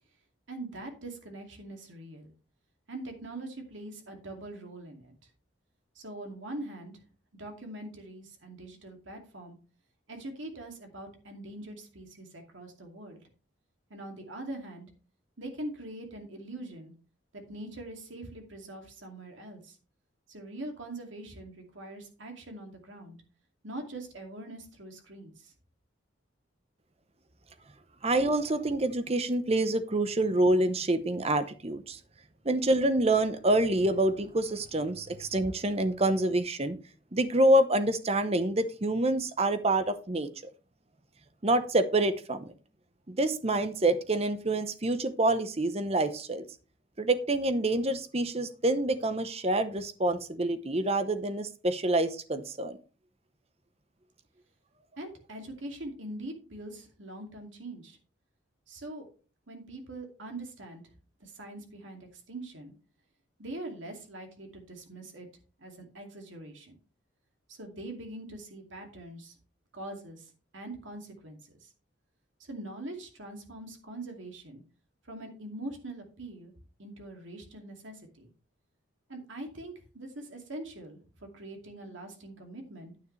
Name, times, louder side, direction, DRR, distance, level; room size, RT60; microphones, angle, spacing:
voice 1, 0.5-2.3 2.9-5.1 6.0-6.9 7.4-9.6 10.1-13.2 13.9-14.9 15.4-16.9 17.3-19.8 20.3-23.2 23.6-25.5 55.0-58.0 58.7-59.1 59.5-60.8 61.2-62.7 63.4-65.3 65.6-66.8 67.5-69.3 69.7-70.3 70.5-71.7 72.4-74.6 75.1-76.5 76.8-78.3 79.1-81.0 81.3-82.9, right 1 dB, 75° right, 3 dB, 2.4 m, -43 dB
voice 2, 28.0-32.0 32.4-36.8 37.1-40.3 41.4-42.5 43.1-46.4 47.0-52.8, right 1 dB, 30° right, 11 dB, 0.8 m, -27 dB
9.5 x 9.4 x 3.2 m, 0.37 s
head